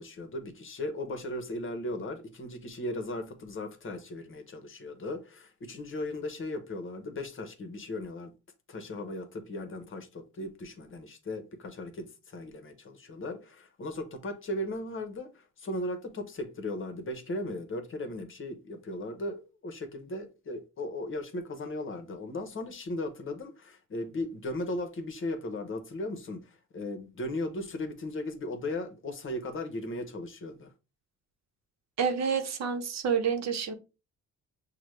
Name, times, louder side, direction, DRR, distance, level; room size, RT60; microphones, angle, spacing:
voice 1, 0.0-8.3 8.7-30.7, left 1 dB, 40° left, 1.0 m, -37 dB
voice 2, 32.0-33.7, right 6 dB, 60° right, 0.8 m, -28 dB
5.9 x 2.2 x 3.2 m
cardioid pair, 90°, 30 cm